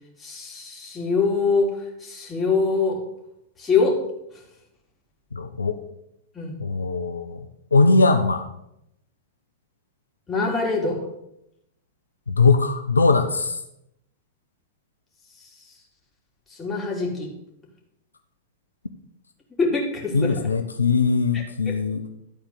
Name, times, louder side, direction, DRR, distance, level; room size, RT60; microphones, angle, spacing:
voice 1, 0.2-3.0 3.6-4.0 6.3-6.6 10.3-11.0 16.5-17.3 19.6-20.4 21.3-21.8, left 4 dB, 15° left, -2 dB, 2.9 m, -24 dB
voice 2, 5.3-5.8 6.6-7.4 7.7-8.4 12.3-13.6 20.1-22.0, left 4 dB, 85° left, 7 dB, 0.6 m, -20 dB
12.0 x 4.4 x 6.6 m, 0.81 s
figure-of-eight pair, 100°, 0 cm